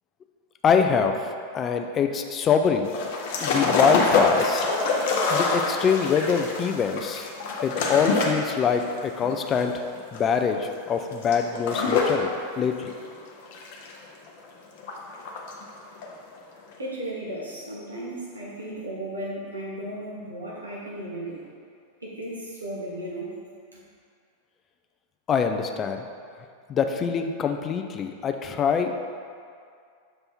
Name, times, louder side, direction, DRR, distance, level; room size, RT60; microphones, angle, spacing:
voice 1, 0.6-2.9 3.4-4.7 5.3-7.3 7.6-9.8 10.1-12.9 25.3-26.0 26.7-28.9, left 6 dB, 25° left, 5 dB, 0.4 m, -24 dB
sound 1, 2.9-12.3 12.6-14.4 14.8-15.6 16.0-16.1, left 4 dB, 50° left, 0.8 m, -26 dB
voice 2, 16.8-21.4 22.0-23.3, right 1 dB, 80° right, -5 dB, 1.2 m, -35 dB
6.9 x 3.3 x 4.4 m, 2.3 s
figure-of-eight pair, 90°, 0 cm